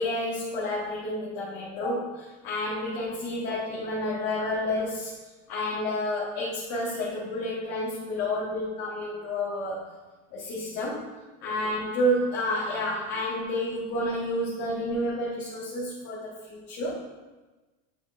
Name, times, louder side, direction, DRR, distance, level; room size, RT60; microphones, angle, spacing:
voice 1, 0.0-5.1 5.5-9.9 10.3-11.0 11.4-17.0, left 1 dB, 45° left, -8 dB, 1.5 m, -30 dB
8.5 x 5.8 x 2.6 m, 1.2 s
supercardioid pair, 150°, 39 cm